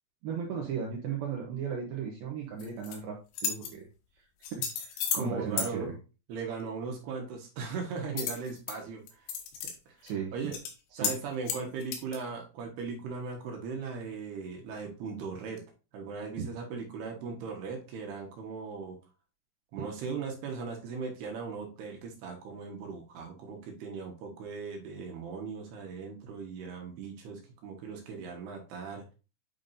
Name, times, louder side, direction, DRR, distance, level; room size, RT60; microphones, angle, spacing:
voice 1, 0.2-3.9 4.5-5.9 10.0-10.5 11.0-11.1, right 6 dB, 85° right, 0 dB, 2.1 m, -36 dB
sound 1, 2.6-3.0 3.3-3.7 4.4-5.3 5.6-5.7 8.2-8.8 9.1-9.7 10.1-10.2 10.5-10.7 11.0-11.2 11.5-12.2, left 7 dB, 70° left, 3.3 m, -33 dB
voice 2, 5.1-6.0 6.3-9.3 9.9-10.0 10.3-10.6 11.0-15.6 15.9-19.0 19.7-29.1, right 5 dB, 65° right, 2 dB, 2.8 m, -38 dB
9.3 x 5.2 x 2.6 m, 0.32 s
omnidirectional pair, 5.7 m